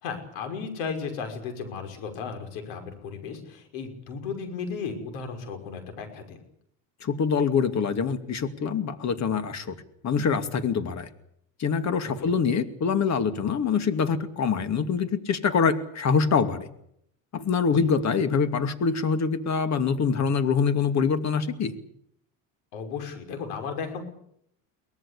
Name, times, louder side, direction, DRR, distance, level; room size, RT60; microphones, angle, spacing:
voice 1, 0.0-6.4 12.0-12.3 17.7-17.8 22.7-24.0, left 5 dB, 80° left, 6 dB, 5.9 m, -35 dB
voice 2, 7.0-9.8 10.0-11.1 11.6-16.7 17.3-21.7, left 6 dB, 45° left, 10 dB, 2.6 m, -25 dB
23.5 x 18.0 x 8.5 m, 0.72 s
supercardioid pair, 85°, 39 cm